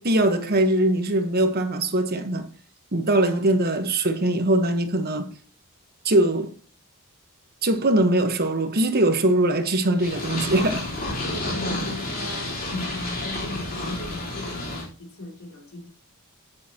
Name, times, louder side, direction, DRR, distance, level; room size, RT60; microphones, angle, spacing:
voice 1, 0.0-2.5 2.9-5.3 6.0-6.5 7.6-10.9, right 1 dB, 45° right, 1.2 m, -21 dB
Purr, 10.0-14.8, left 2 dB, 40° left, 3.7 m, -30 dB
voice 2, 11.2-15.9, left 1 dB, 70° left, 3.0 m, -37 dB
11.0 x 10.0 x 2.9 m
head